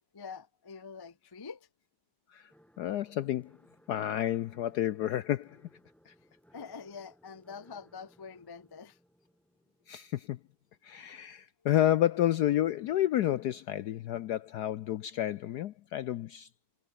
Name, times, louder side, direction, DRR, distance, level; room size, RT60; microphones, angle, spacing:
voice 1, 0.1-1.7 6.5-9.0, left 5 dB, 30° left, 0.4 m, -45 dB
sound 1, 2.5-11.3, equal, ahead, 3.4 m, -64 dB
voice 2, 2.8-3.5 3.9-5.6 6.1-6.2 9.9-10.4 10.8-16.5, left 12 dB, 75° left, 0.9 m, -30 dB
omnidirectional pair, 2.2 m